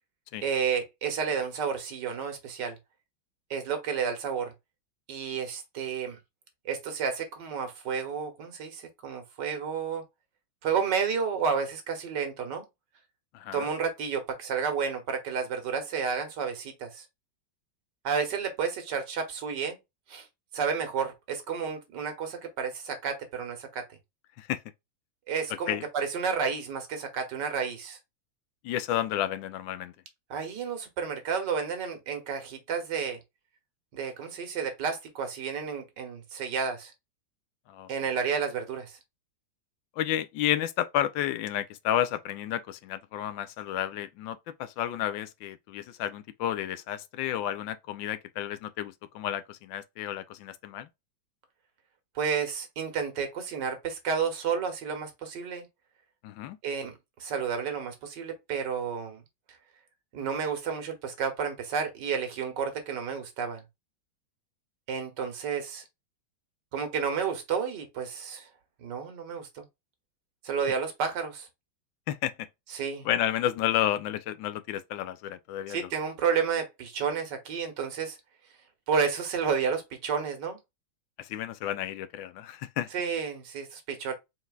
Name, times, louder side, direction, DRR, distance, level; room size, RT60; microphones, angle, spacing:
voice 1, 0.4-2.8 3.5-4.5 5.1-6.2 6.6-10.0 10.6-12.6 13.5-17.0 18.0-19.8 20.1-20.3 20.5-23.9 25.3-28.0 30.3-33.2 33.9-36.9 37.9-39.0 52.1-55.7 56.6-56.9 57.2-59.2 60.1-63.6 64.9-65.8 66.7-68.5 68.8-69.6 70.4-71.5 72.7-73.1 75.7-78.2 78.9-80.6 82.9-84.1, right 6 dB, 65° right, 1.7 m, -31 dB
voice 2, 13.3-13.7 24.4-24.6 25.7-25.8 28.6-29.9 37.7-37.9 40.0-50.9 56.2-56.6 72.1-72.3 73.0-75.9 81.2-82.9, left 12 dB, 80° left, 1.3 m, -31 dB
4.1 x 4.0 x 2.3 m
omnidirectional pair, 2.1 m